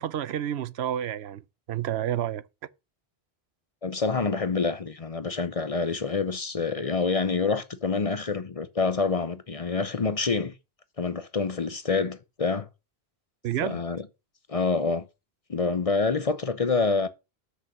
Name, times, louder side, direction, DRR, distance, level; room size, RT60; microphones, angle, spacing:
voice 1, 0.0-2.4 13.4-13.8, right 11 dB, 85° right, 0.9 m, -30 dB
voice 2, 3.8-10.5 11.0-12.7 13.6-14.0 14.5-15.1 15.5-17.1, left 4 dB, 40° left, 0.7 m, -27 dB
7.8 x 6.5 x 5.9 m
omnidirectional pair, 1.1 m